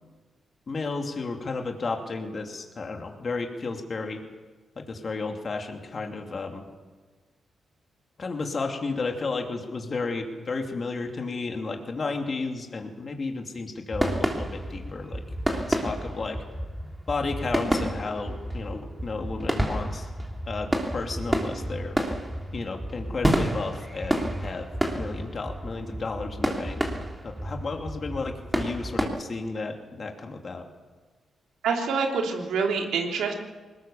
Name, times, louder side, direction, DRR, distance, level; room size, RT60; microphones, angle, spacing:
voice 1, 0.7-4.2 4.8-6.7 8.2-15.2 15.5-16.4 17.1-20.1 20.5-22.0 22.5-24.7 25.0-26.8 27.2-30.6, left 3 dB, 45° left, 3 dB, 2.8 m, -33 dB
sound 1, 13.9-29.1, right 1 dB, 10° right, 3.2 m, -30 dB
voice 2, 31.6-33.3, right 5 dB, 90° right, 1 dB, 3.2 m, -26 dB
21.0 x 19.5 x 7.2 m, 1.4 s
cardioid pair, 75°, 0 cm